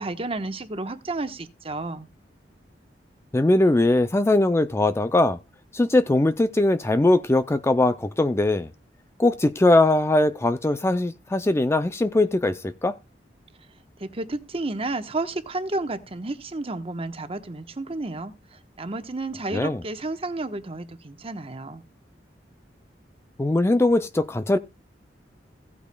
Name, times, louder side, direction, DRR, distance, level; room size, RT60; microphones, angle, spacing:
voice 1, 0.0-2.1 14.0-18.3 18.8-21.8, right 2 dB, 35° right, 1.0 m, -31 dB
voice 2, 3.3-5.4 5.7-8.7 9.2-12.9 19.5-19.8 23.4-24.6, left 2 dB, 15° left, 0.4 m, -21 dB
16.5 x 8.4 x 2.2 m
head